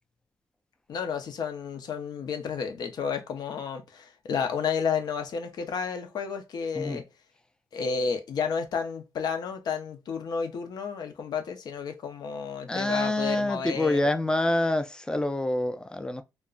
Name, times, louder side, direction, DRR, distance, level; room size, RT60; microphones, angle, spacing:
voice 1, 0.9-7.0 7.7-14.0, left 6 dB, 65° left, 0.6 m, -31 dB
voice 2, 12.7-16.2, left 1 dB, 10° left, 0.4 m, -26 dB
2.3 x 2.1 x 3.6 m
cardioid pair, 105°, 7 cm